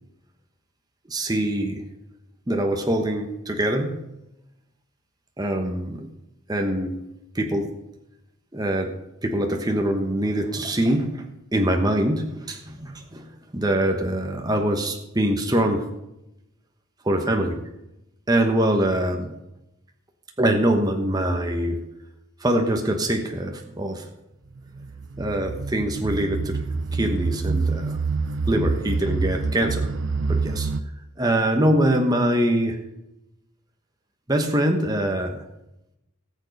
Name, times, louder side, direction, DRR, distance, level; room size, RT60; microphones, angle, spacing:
voice 1, 1.1-1.8 2.5-4.0 5.4-6.1 6.5-6.9 7.3-7.7 8.5-8.9 9.2-13.3 13.5-15.9 17.0-17.6 18.3-19.3 20.4-21.8 22.4-24.1 25.2-26.6 26.9-28.0 28.5-29.9 30.3-30.7 31.2-32.8 34.3-35.4, right 1 dB, 20° right, 3 dB, 1.1 m, -23 dB
sound 1, 24.6-30.8, right 4 dB, 55° right, 0.6 m, -27 dB
18.0 x 7.2 x 5.3 m, 0.89 s
head